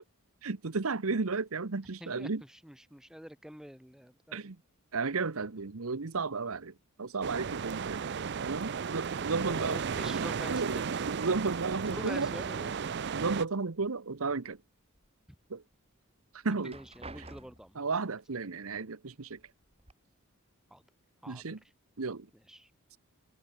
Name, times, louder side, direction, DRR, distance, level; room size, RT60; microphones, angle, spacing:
voice 1, 0.4-2.4 4.3-4.6 4.9-8.0 8.4-9.8 10.1-10.8 11.1-12.3 13.1-14.6 15.5-15.6 16.4-16.8 17.8-19.4 21.3-21.6 22.0-22.3, right 4 dB, 70° right, 1.0 m, -33 dB
voice 2, 2.0-4.5 9.2-11.0 11.9-13.1 16.6-17.8 20.7-20.8 21.2-21.6 22.5-22.7, equal, 5° right, 1.3 m, -46 dB
sound 1, 7.2-13.4, right 6 dB, 50° right, 0.5 m, -34 dB
Door open and close, 11.9-12.6 12.9-13.9 14.3-15.1 15.6-15.7 16.4-17.8 18.8-18.9 19.3-19.9, right 2 dB, 25° right, 6.2 m, -52 dB
head